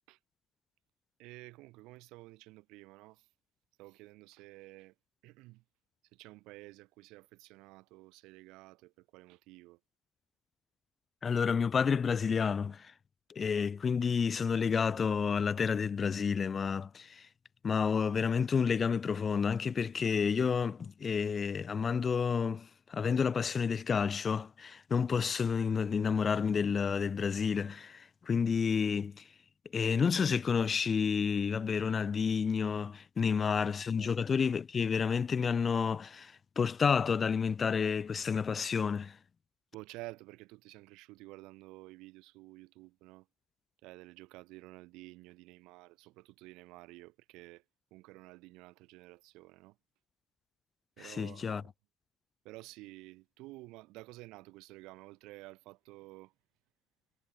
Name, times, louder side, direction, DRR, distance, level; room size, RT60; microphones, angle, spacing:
voice 1, 1.2-3.2 3.8-4.9 5.2-5.6 6.1-9.8 33.2-33.7 34.0-34.1 39.7-43.3 43.8-47.6 47.9-49.8 51.0-51.7 52.4-56.3, right 21 dB, 60° right, 1.2 m, -52 dB
voice 2, 11.2-12.9 13.3-17.3 17.6-29.2 29.7-39.2 51.0-51.6, left 6 dB, 35° left, 0.4 m, -30 dB
figure-of-eight pair, 55°, 0 cm